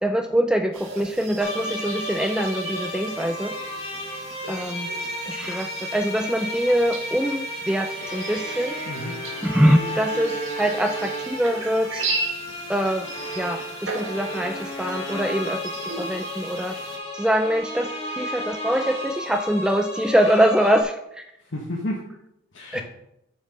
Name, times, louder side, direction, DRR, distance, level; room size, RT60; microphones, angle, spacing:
voice 1, 0.0-3.5 4.5-4.9 5.3-8.7 9.4-12.0 12.7-13.1 13.4-15.6 16.0-16.8 17.1-17.9 18.2-21.2 22.7-22.8, equal, 5° right, 7 dB, 0.3 m, -23 dB
sound 1, 0.7-17.0, right 3 dB, 85° right, 1.5 m, -36 dB
sound 2, 1.4-20.8, equal, 30° left, 1.8 m, -33 dB
voice 2, 8.8-9.3 21.4-22.1 22.5-22.8, left 1 dB, 70° left, -3 dB, 1.3 m, -32 dB
6.8 x 6.4 x 5.3 m, 0.82 s
head